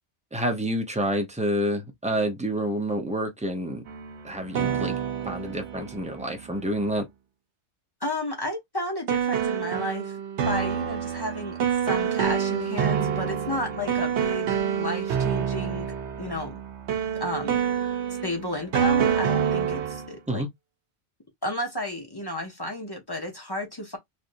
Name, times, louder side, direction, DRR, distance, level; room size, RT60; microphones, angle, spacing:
voice 1, 0.3-3.8 4.2-5.0 5.2-7.1 20.3-20.5, equal, 5° right, 0.7 m, -28 dB
sound 1, 3.9-6.8 9.1-20.1, right 8 dB, 70° right, 1.0 m, -27 dB
voice 2, 8.0-10.1 10.5-11.6 11.9-14.5 14.8-16.6 17.2-17.6 18.2-20.4 21.4-24.0, left 1 dB, 25° left, 0.8 m, -32 dB
3.3 x 2.7 x 2.6 m
omnidirectional pair, 1.2 m